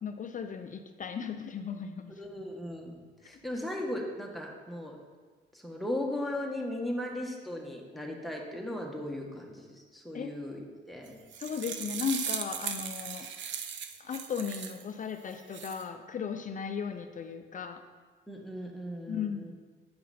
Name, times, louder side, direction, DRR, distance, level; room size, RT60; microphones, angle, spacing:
voice 1, 0.0-2.1 10.1-10.3 11.4-13.3 14.0-17.8 19.1-19.5, left 6 dB, 40° left, 7 dB, 0.6 m, -36 dB
voice 2, 2.1-5.0 5.5-11.2 18.3-19.5, left 1 dB, ahead, 0 dB, 1.4 m, -37 dB
sound 1, 11.1-14.8 15.3-15.8, right 7 dB, 65° right, 0.7 m, -38 dB
9.5 x 5.6 x 4.2 m, 1.5 s
cardioid pair, 90°, 20 cm